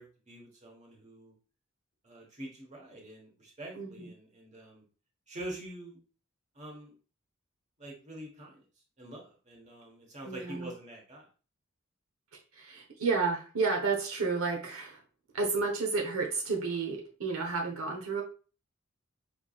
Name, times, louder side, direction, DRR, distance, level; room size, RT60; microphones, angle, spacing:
voice 1, 0.0-1.3 2.0-4.8 5.3-6.0 6.5-6.9 7.8-8.6 9.0-11.3, right 1 dB, 35° right, 0 dB, 1.3 m, -45 dB
voice 2, 3.7-4.1 10.2-10.7 12.5-15.0 15.3-18.2, right 4 dB, 85° right, 1 dB, 1.0 m, -31 dB
5.2 x 3.5 x 2.4 m, 0.37 s
head